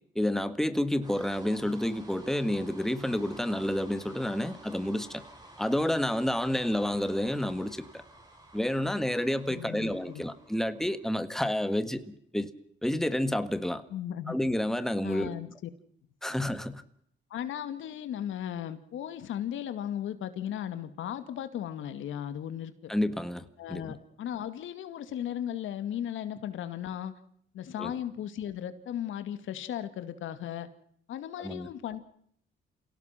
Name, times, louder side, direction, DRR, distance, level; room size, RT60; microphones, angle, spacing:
voice 1, 0.1-5.2 5.6-8.0 8.5-12.5 12.8-13.8 14.3-15.3 16.2-16.8 22.9-23.9 27.8-27.9 31.4-31.7, left 1 dB, ahead, 1.7 m, -29 dB
sound 1, 1.0-11.3, right 1 dB, 20° right, 7.9 m, -53 dB
voice 2, 9.5-10.2 13.9-14.4 15.0-15.7 17.3-22.9 23.6-27.2 27.5-30.7 31.1-32.0, left 10 dB, 80° left, 2.3 m, -36 dB
28.0 x 17.5 x 5.9 m
cardioid pair, 90°, 20 cm